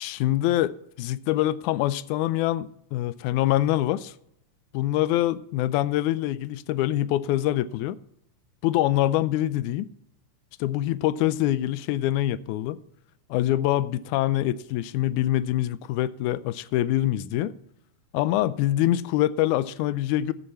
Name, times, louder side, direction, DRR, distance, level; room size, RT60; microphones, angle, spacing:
voice 1, 0.0-4.1 4.7-8.0 8.6-9.9 10.6-12.8 13.3-17.5 18.1-20.3, left 14 dB, 80° left, 16 dB, 1.8 m, -25 dB
13.0 x 8.0 x 4.2 m, 0.75 s
omnidirectional pair, 3.8 m